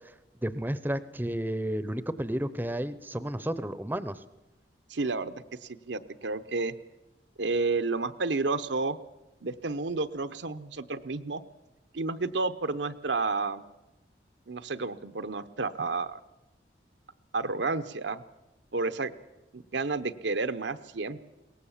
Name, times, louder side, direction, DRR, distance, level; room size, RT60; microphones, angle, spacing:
voice 1, 0.4-4.2, right 1 dB, 10° right, 14 dB, 0.6 m, -32 dB
voice 2, 4.9-5.3 5.6-6.7 7.4-9.0 9.4-11.4 11.9-13.6 14.5-16.2 17.3-18.2 18.7-19.1 19.5-21.2, right 3 dB, 80° right, 11 dB, 0.9 m, -31 dB
22.0 x 18.5 x 7.3 m, 1.0 s
head